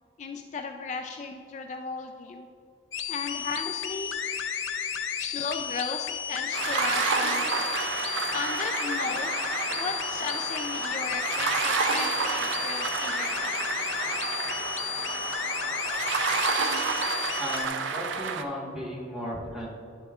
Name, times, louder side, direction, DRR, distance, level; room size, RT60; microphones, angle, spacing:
voice 1, 0.2-2.5 3.1-4.1 5.2-7.7 8.3-9.3 9.7-13.7, left 4 dB, 40° left, 4 dB, 0.3 m, -35 dB
sound 1, 2.9-17.7, left 8 dB, 90° left, 0.5 m, -33 dB
sound 2, 6.5-18.4, right 5 dB, 80° right, 0.5 m, -30 dB
voice 2, 17.4-19.7, equal, 5° right, -5 dB, 1.3 m, -35 dB
10.0 x 6.9 x 2.4 m, 2.6 s
head